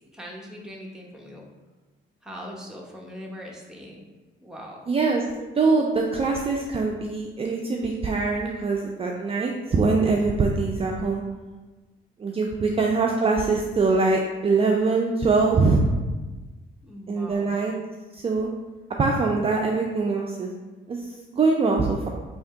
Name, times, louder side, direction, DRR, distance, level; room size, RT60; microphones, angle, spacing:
voice 1, 0.1-1.4 2.2-4.1 4.4-4.9 12.5-12.8 16.8-17.6, equal, 5° right, -2 dB, 0.9 m, -41 dB
voice 2, 4.9-5.2 5.6-11.2 12.2-15.8 17.1-17.7 18.1-18.5 19.0-20.5 20.9-22.1, right 3 dB, 30° right, 0 dB, 0.4 m, -23 dB
3.4 x 2.8 x 4.5 m, 1.2 s
cardioid pair, 90°, 20 cm